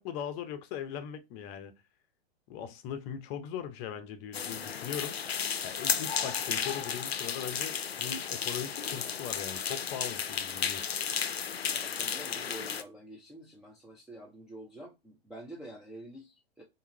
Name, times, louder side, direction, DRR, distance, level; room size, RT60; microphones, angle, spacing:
voice 1, 0.0-1.7 2.5-5.2 5.4-10.9, left 8 dB, 35° left, 0.6 m, -40 dB
sound 1, 4.3-12.8, left 7 dB, 85° left, 0.5 m, -33 dB
voice 2, 11.7-16.6, right 1 dB, ahead, 0.3 m, -47 dB
3.5 x 2.6 x 3.0 m
figure-of-eight pair, 105°, 30 cm